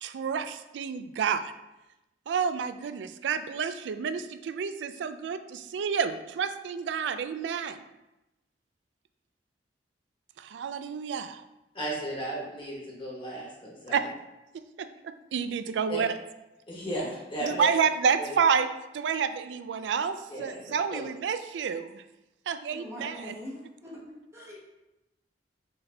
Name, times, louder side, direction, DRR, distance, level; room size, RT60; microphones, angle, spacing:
voice 1, 0.0-1.5 2.3-7.8 10.4-11.4 13.9-14.1 14.8-16.1 17.4-18.7 18.9-22.0 22.5-23.3, right 6 dB, 85° right, 11 dB, 0.3 m, -29 dB
voice 2, 11.7-14.1 15.9-16.0 16.7-17.7 18.2-18.3 20.3-21.1, right 1 dB, 30° left, -4 dB, 1.1 m, -35 dB
voice 3, 22.7-24.0 24.3-24.6, left 1 dB, 15° right, -4 dB, 1.0 m, -42 dB
4.0 x 3.8 x 3.4 m, 0.96 s
head